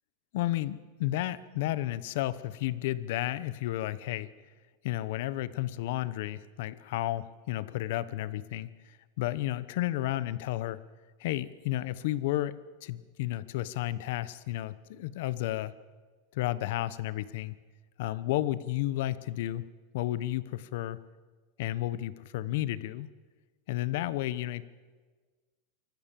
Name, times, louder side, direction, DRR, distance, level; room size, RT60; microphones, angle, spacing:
voice 1, 0.3-4.3 4.8-10.8 11.2-15.7 16.3-17.5 18.0-19.7 19.9-21.0 21.6-23.1 23.7-24.6, left 15 dB, 55° left, 17 dB, 0.9 m, -32 dB
26.5 x 14.5 x 7.5 m, 1.4 s
supercardioid pair, 170°, 0 cm